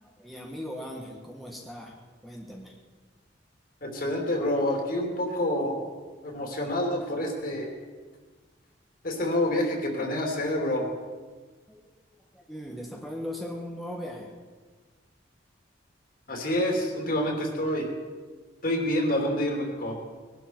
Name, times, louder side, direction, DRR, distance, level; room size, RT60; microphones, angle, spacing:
voice 1, 0.0-1.9 2.2-2.7 11.7-11.8 12.3-14.3, left 1 dB, ahead, -2 dB, 1.5 m, -38 dB
voice 2, 3.8-5.8 6.2-7.7 9.0-10.9 16.3-17.9 18.6-19.9, left 1 dB, 50° left, 1 dB, 2.9 m, -27 dB
20.5 x 12.0 x 4.6 m, 1.4 s
head